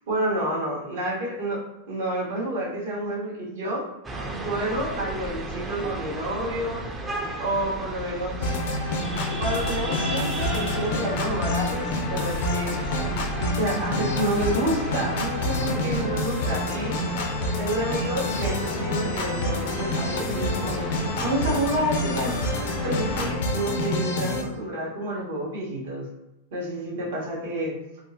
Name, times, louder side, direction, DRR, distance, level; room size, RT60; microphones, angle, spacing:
voice 1, 0.1-1.6 1.9-3.8 4.4-6.8 7.4-8.6 9.4-12.8 13.4-17.0 17.6-22.3 22.8-26.1 26.5-27.7, right 1 dB, 70° right, -5 dB, 1.4 m, -29 dB
sound 1, 4.0-23.4, right 2 dB, 20° right, 0.5 m, -34 dB
sound 2, 8.4-24.4, left 2 dB, 70° left, 0.5 m, -28 dB
3.4 x 2.1 x 2.8 m, 0.88 s
hypercardioid pair, 120°, 0 cm